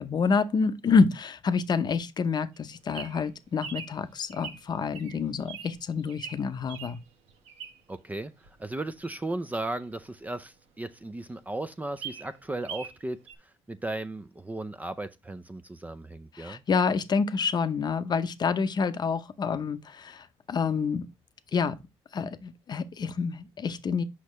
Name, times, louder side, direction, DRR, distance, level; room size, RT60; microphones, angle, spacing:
voice 1, 0.0-7.0 16.3-21.1 21.5-21.8 22.1-24.0, left 5 dB, 40° left, 0.7 m, -27 dB
Bird vocalization bird call bird song, 2.5-8.0 8.4-10.6 11.0-11.1 11.3-11.4 11.7-13.0 13.3-13.4, right 7 dB, 75° right, 1.1 m, -43 dB
voice 2, 7.9-16.6, right 2 dB, 15° right, 0.5 m, -36 dB
6.4 x 5.7 x 3.1 m
cardioid pair, 90°, 11 cm